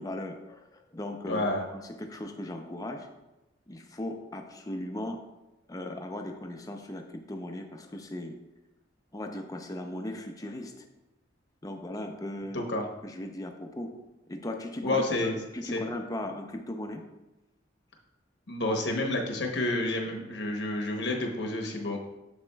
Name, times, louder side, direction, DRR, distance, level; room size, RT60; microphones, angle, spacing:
voice 1, 0.0-3.1 3.7-5.2 5.7-8.3 9.1-10.8 11.6-12.6 13.0-13.9 14.3-17.0, left 1 dB, 20° left, 4 dB, 0.5 m, -38 dB
voice 2, 1.3-1.6 12.5-12.8 14.8-15.3 15.6-15.8 18.5-22.0, left 2 dB, 65° left, 2 dB, 0.9 m, -29 dB
7.2 x 7.1 x 2.3 m, 1.0 s
head